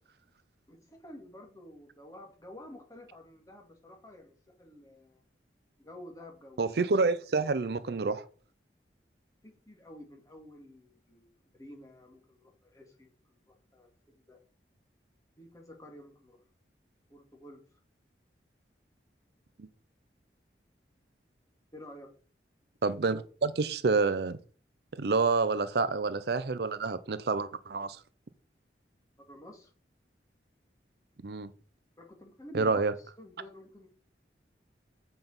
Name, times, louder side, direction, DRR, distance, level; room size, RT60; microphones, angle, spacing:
voice 1, 0.7-5.2 5.8-6.7 9.4-14.4 15.4-16.4 17.1-17.6 21.7-22.1 29.2-29.7 32.0-32.8 33.2-33.9, left 1 dB, 20° left, 2.1 m, -50 dB
voice 2, 6.6-8.2 19.6-19.7 22.8-24.4 24.9-28.0 31.2-31.5 32.5-32.9, right 4 dB, 60° right, 0.5 m, -28 dB
8.0 x 5.3 x 5.5 m
head